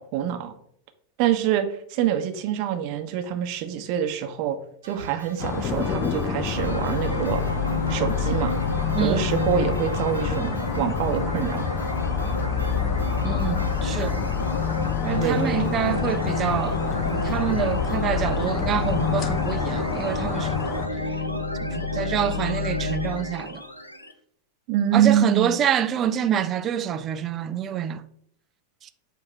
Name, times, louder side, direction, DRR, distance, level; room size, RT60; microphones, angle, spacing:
voice 1, 0.1-0.5 1.2-4.6 4.8-7.4 7.9-8.5 9.0-11.7 15.2-15.6 24.7-25.5, right 10 dB, 45° right, 0.9 m, -25 dB
sound 1, 4.8-18.1, right 2 dB, 80° right, 1.1 m, -40 dB
sound 2, 5.4-20.9, left 7 dB, 30° left, 0.7 m, -28 dB
sound 3, 6.6-24.1, left 3 dB, 85° left, 0.7 m, -29 dB
voice 2, 8.9-9.4 13.2-14.3 15.0-20.6 21.6-23.6 24.9-28.0 28.8-28.9, right 9 dB, 30° right, 0.5 m, -27 dB
7.7 x 2.9 x 5.7 m
figure-of-eight pair, 90°, 0 cm